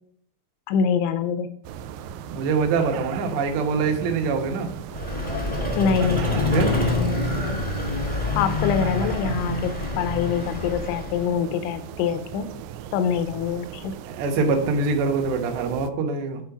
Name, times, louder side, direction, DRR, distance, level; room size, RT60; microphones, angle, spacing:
voice 1, 0.7-1.5 5.8-6.3 8.3-12.5 12.9-14.0, left 7 dB, 90° left, 10 dB, 3.0 m, -25 dB
sound 1, 1.6-15.9, right 9 dB, 90° right, 2.3 m, -37 dB
voice 2, 2.3-4.7 6.5-6.8 14.1-16.4, right 4 dB, 75° right, 3 dB, 3.2 m, -24 dB
Vehicle, 4.9-11.3, left 3 dB, 35° left, 0.4 m, -26 dB
11.5 x 4.5 x 5.8 m, 0.62 s
omnidirectional pair, 5.2 m